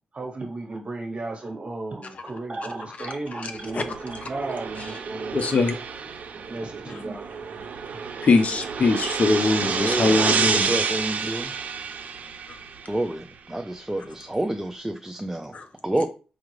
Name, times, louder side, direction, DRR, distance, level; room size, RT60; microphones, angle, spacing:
voice 1, 0.1-5.4 6.5-7.6, right 2 dB, 45° right, 1.2 m, -34 dB
sound 1, 3.6-13.1, right 5 dB, 70° right, 0.5 m, -29 dB
voice 2, 5.3-5.8 8.2-10.7 12.5-12.6 15.5-15.7, left 3 dB, 55° left, 0.6 m, -22 dB
voice 3, 9.6-10.2 10.5-11.5 12.9-15.5 15.8-16.1, right 1 dB, 10° right, 0.4 m, -28 dB
4.9 x 2.4 x 3.1 m
cardioid pair, 80°, 3 cm